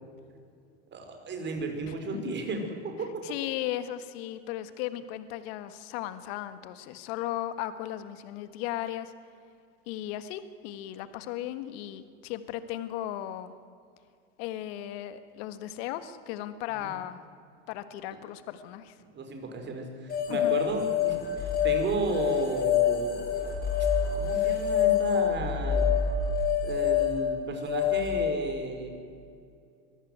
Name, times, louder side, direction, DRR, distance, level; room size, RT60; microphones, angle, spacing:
voice 1, 0.9-3.2 16.8-16.9 19.1-23.2 24.2-25.9 26.6-28.9, right 3 dB, 35° right, 4 dB, 5.4 m, -34 dB
voice 2, 1.8-2.3 3.2-9.1 9.9-13.5 14.4-17.2 17.7-19.0 20.3-20.6, left 13 dB, 70° left, 12 dB, 1.6 m, -36 dB
sound 1, 20.1-28.4, left 8 dB, 25° left, 4.5 m, -26 dB
23.0 x 15.0 x 9.5 m, 2.4 s
supercardioid pair, 105°, 32 cm